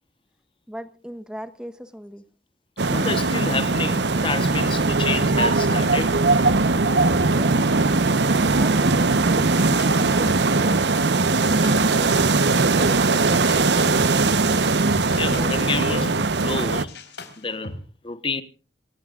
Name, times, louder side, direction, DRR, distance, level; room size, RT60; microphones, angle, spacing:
voice 1, 0.7-2.2 7.3-7.8 10.1-10.9, equal, 5° right, 1.2 m, -38 dB
sound 1, 2.8-16.9, right 3 dB, 75° right, 1.0 m, -20 dB
voice 2, 2.9-6.2 15.2-17.0 17.4-18.4, left 4 dB, 30° left, 1.1 m, -29 dB
sound 2, 9.6-12.9 13.2-16.6 16.9-17.9, left 2 dB, 75° left, 4.5 m, -39 dB
27.0 x 16.0 x 2.4 m
head